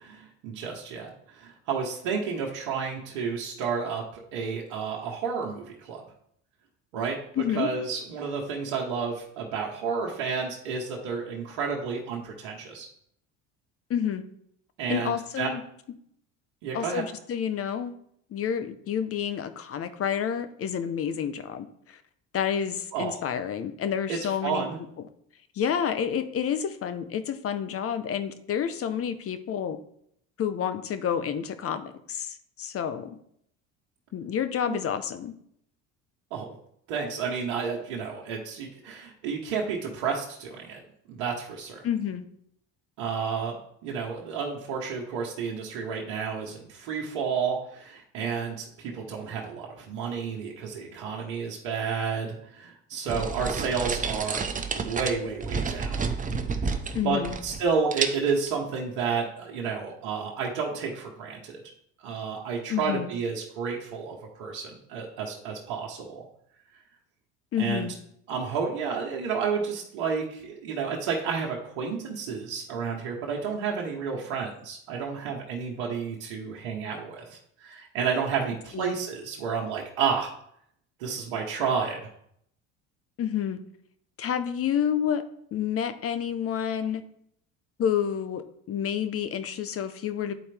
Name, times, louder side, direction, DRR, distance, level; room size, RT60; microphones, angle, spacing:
voice 1, 0.0-6.0 6.9-7.2 7.5-12.9 14.8-15.5 16.6-17.1 22.9-23.2 24.1-24.8 34.7-34.8 36.3-36.5 36.9-40.8 41.1-41.8 43.0-56.0 57.0-61.6 62.0-66.2 67.6-67.9 68.3-80.3 81.0-82.0, right 5 dB, 80° right, -1 dB, 1.2 m, -31 dB
voice 2, 7.4-7.7 13.9-14.2 14.9-15.6 16.7-17.9 18.3-22.0 22.3-24.7 25.6-29.8 30.4-33.2 34.1-35.3 41.8-42.2 56.9-57.4 62.7-63.1 67.5-67.9 78.7-78.9 83.2-83.6 84.2-85.2 85.5-87.0 87.8-88.4 88.7-90.3, left 8 dB, 40° left, 11 dB, 0.8 m, -29 dB
sound 1, 53.1-57.7 57.9-58.5, right 4 dB, 25° right, 0.8 m, -30 dB
10.0 x 4.2 x 3.4 m, 0.70 s
supercardioid pair, 80°, 34 cm